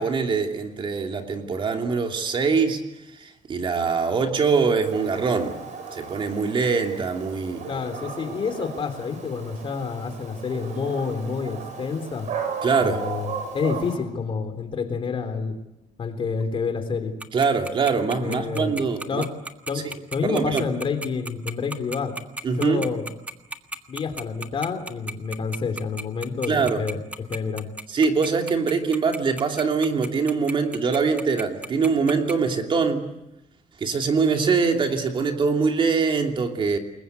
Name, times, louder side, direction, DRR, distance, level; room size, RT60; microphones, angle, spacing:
voice 1, 0.0-2.8 3.2-5.6 5.9-7.7 12.6-13.0 17.3-19.3 20.2-20.6 22.4-22.9 26.5-26.8 27.9-33.0 33.8-36.8, right 5 dB, 35° right, 4 dB, 2.9 m, -23 dB
Dog, 4.8-14.0, right 6 dB, 60° right, 7.4 m, -35 dB
voice 2, 7.7-12.3 12.8-15.6 16.0-17.1 18.2-19.3 19.7-19.9 20.1-22.2 22.6-23.0 23.9-27.0 27.3-27.7, left 5 dB, 40° left, 6 dB, 3.5 m, -28 dB
Tick-tock, 17.2-32.3, right 2 dB, 10° right, 1.6 m, -33 dB
29.0 x 22.0 x 8.2 m, 0.92 s
cardioid pair, 155°, 14 cm